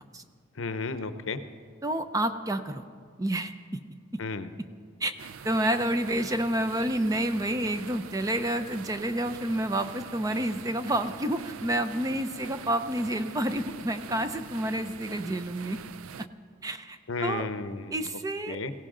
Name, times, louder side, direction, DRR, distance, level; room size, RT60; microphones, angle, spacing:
voice 1, 0.6-1.4 4.2-4.5 17.1-17.9 18.5-18.7, left 3 dB, 70° left, 11 dB, 0.7 m, -33 dB
voice 2, 1.8-2.8 3.2-3.5 5.0-5.1 5.4-15.8 16.6-17.5 17.9-18.6, right 1 dB, 15° right, 9 dB, 0.5 m, -29 dB
sound 1, 5.2-16.3, right 6 dB, 80° right, 0.4 m, -44 dB
21.0 x 16.5 x 3.8 m, 2.1 s
head